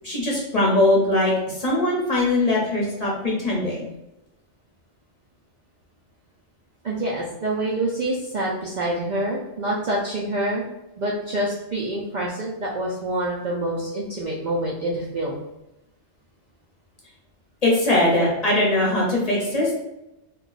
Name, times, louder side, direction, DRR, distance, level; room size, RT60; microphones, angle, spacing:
voice 1, 0.0-3.9 17.6-19.7, left 1 dB, 40° left, -4 dB, 0.8 m, -21 dB
voice 2, 6.8-10.6 11.0-15.4, right 1 dB, 55° right, -4 dB, 0.5 m, -26 dB
2.3 x 2.2 x 3.8 m, 0.89 s
omnidirectional pair, 1.2 m